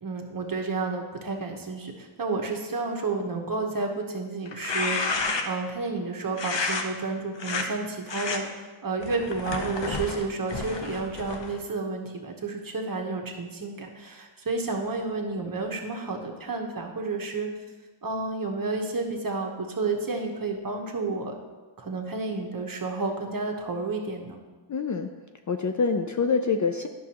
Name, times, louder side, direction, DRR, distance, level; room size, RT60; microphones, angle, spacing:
voice 1, 0.0-5.1 5.4-17.5 18.0-21.4 21.8-24.4, right 3 dB, 45° right, 2 dB, 1.1 m, -31 dB
sound 1, 4.5-5.7 6.4-6.8 7.4-7.7 8.1-8.4 9.0-11.6, left 4 dB, 60° left, 0.8 m, -30 dB
voice 2, 24.7-25.1 25.5-26.9, left 5 dB, 40° left, 6 dB, 0.4 m, -25 dB
10.0 x 6.3 x 2.9 m, 1.3 s
wide cardioid pair, 105°, 49 cm